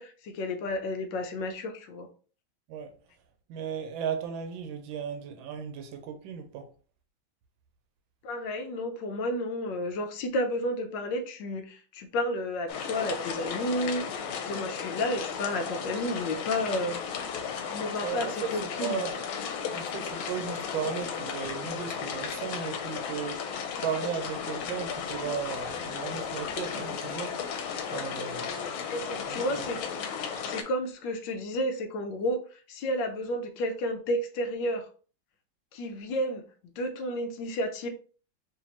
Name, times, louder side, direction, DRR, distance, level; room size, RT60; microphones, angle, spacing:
voice 1, 0.0-2.1 8.2-17.0 17.7-19.0 28.9-29.8 30.4-34.9 35.7-36.4 36.8-37.9, left 1 dB, 70° left, 1.2 m, -31 dB
voice 2, 3.5-6.7 18.0-19.2 19.7-27.4 27.9-28.8 29.3-29.7, right 8 dB, 80° right, 1.5 m, -36 dB
sound 1, 12.7-30.6, left 7 dB, 90° left, 1.5 m, -35 dB
5.2 x 2.6 x 2.9 m
omnidirectional pair, 2.2 m